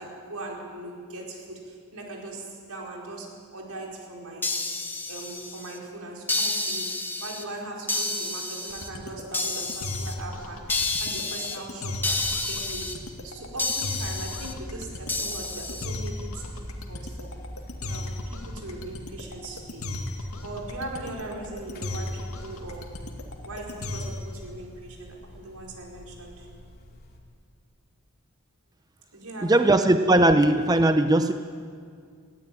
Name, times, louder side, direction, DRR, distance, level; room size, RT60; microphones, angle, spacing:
voice 1, 0.0-4.5 5.1-16.6 16.9-17.3 17.8-23.0 23.4-26.5 29.1-29.8, right 2 dB, 85° right, -1 dB, 4.7 m, -40 dB
sound 1, 4.4-5.8 6.3-7.4 7.9-8.9 9.3-10.1 10.7-11.6 12.0-12.9 13.6-14.5 15.1-15.9, left 2 dB, 10° left, 1.2 m, -30 dB
sound 2, 8.7-24.3, left 2 dB, 80° left, 2.2 m, -35 dB
Buzz, 12.2-27.2, equal, 45° left, 2.8 m, -45 dB
voice 2, 29.4-31.3, right 1 dB, 15° right, 8 dB, 0.6 m, -19 dB
20.0 x 15.5 x 9.3 m, 2.2 s
head